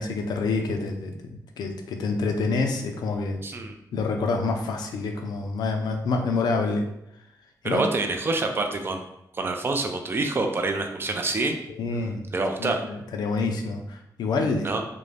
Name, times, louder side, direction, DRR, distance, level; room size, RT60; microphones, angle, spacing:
voice 1, 0.0-3.4 3.9-6.8 7.6-7.8 11.7-12.3 12.6-14.7, left 3 dB, 85° left, 4 dB, 0.4 m, -27 dB
voice 2, 3.4-3.7 7.6-9.1 9.3-11.6 12.3-12.9 14.6-14.8, right 3 dB, 35° right, 4 dB, 0.4 m, -26 dB
2.5 x 2.1 x 3.2 m, 0.82 s
cardioid pair, 105°, 7 cm